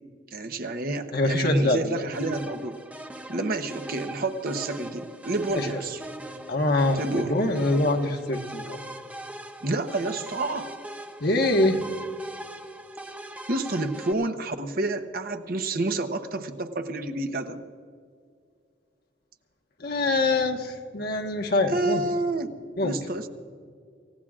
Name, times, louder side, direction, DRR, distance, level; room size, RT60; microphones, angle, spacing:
voice 1, 0.3-2.8 3.3-6.0 7.0-7.3 9.6-10.7 13.5-17.6 21.7-22.5 22.8-23.3, right 2 dB, 55° right, 7 dB, 1.0 m, -29 dB
voice 2, 1.1-2.0 5.5-5.8 6.5-8.8 11.2-11.8 19.8-22.0 22.8-23.0, left 2 dB, 60° left, 3 dB, 1.3 m, -24 dB
sound 1, 2.1-14.1, right 1 dB, 10° right, 0.7 m, -41 dB
28.0 x 16.5 x 2.5 m, 2.2 s
head